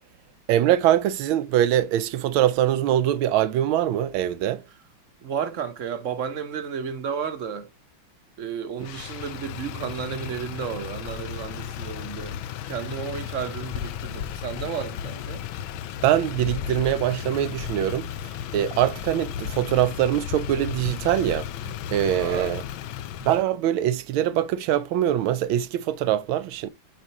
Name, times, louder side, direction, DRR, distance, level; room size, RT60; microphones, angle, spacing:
voice 1, 0.5-4.6 16.0-21.5 21.9-22.6 23.2-26.7, right 11 dB, 80° right, 1.4 m, -23 dB
voice 2, 5.2-7.7 8.4-12.4 12.7-15.5 22.2-22.5, right 7 dB, 50° right, 1.0 m, -32 dB
Motor vehicle (road), 8.8-23.4, left 10 dB, 80° left, 1.4 m, -34 dB
7.5 x 5.1 x 2.9 m
omnidirectional pair, 2.2 m